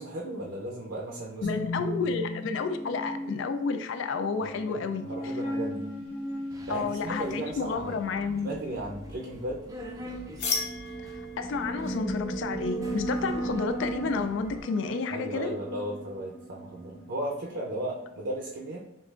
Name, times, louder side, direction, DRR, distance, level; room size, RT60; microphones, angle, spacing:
voice 1, 0.0-2.2 4.4-5.9 6.7-8.0 8.4-9.6 15.1-18.9, right 1 dB, 65° right, -3 dB, 0.6 m, -36 dB
voice 2, 1.4-5.1 6.7-8.5 11.4-15.5, left 4 dB, 70° left, 9 dB, 0.3 m, -30 dB
sound 1, 1.4-18.1, equal, 30° left, 1.1 m, -37 dB
Subway metro underground, 6.5-14.6, equal, 15° right, 0.4 m, -46 dB
sound 2, 10.4-15.9, left 1 dB, 50° left, 0.8 m, -38 dB
6.5 x 2.4 x 2.4 m, 0.83 s
head